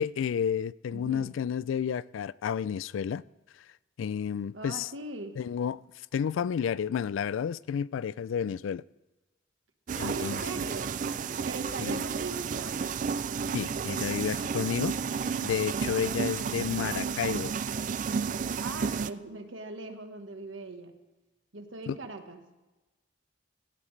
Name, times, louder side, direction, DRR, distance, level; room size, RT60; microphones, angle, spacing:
voice 1, 0.0-3.2 4.0-4.9 5.4-5.8 6.1-8.8 10.0-10.4 11.8-12.0 13.5-15.0 15.4-17.5 21.9-22.0, left 8 dB, 85° left, 0.3 m, -31 dB
voice 2, 0.9-1.4 4.5-5.4 10.0-11.0 11.4-13.1 16.1-17.0 18.6-21.0 21.5-22.5, right 2 dB, 85° right, 1.3 m, -41 dB
sound 1, 9.9-19.1, right 6 dB, 40° right, 0.3 m, -32 dB
17.0 x 12.5 x 3.2 m
head